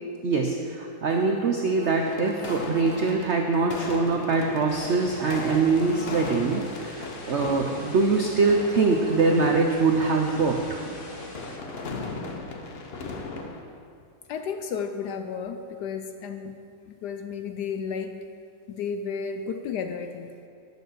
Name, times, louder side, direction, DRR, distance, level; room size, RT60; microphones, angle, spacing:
voice 1, 0.2-10.8, right 4 dB, 75° right, 2 dB, 0.6 m, -23 dB
sound 1, 1.1-9.5, right 1 dB, 50° right, 1.4 m, -43 dB
sound 2, 2.0-13.6, left 3 dB, 55° left, 0.7 m, -38 dB
sound 3, 4.7-11.6, left 2 dB, 35° left, 1.0 m, -44 dB
voice 2, 14.3-16.6 16.9-18.2 18.7-20.3, left 6 dB, 70° left, 7 dB, 1.0 m, -33 dB
10.0 x 6.2 x 6.6 m, 2.4 s
omnidirectional pair, 2.1 m